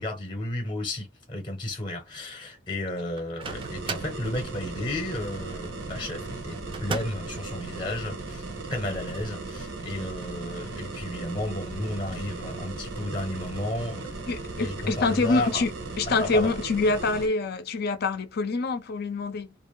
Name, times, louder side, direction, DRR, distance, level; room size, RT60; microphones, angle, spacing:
voice 1, 0.0-8.4 8.7-14.1 14.6-15.6 16.1-16.5, left 1 dB, 25° left, 0.7 m, -33 dB
Microwave oven, 3.2-4.2 6.7-7.3, right 4 dB, 30° right, 0.4 m, -35 dB
sound 1, 3.4-17.3, right 3 dB, 80° right, 0.8 m, -37 dB
voice 2, 14.3-15.7 16.0-19.5, left 3 dB, 55° left, 0.5 m, -26 dB
2.5 x 2.2 x 3.0 m
head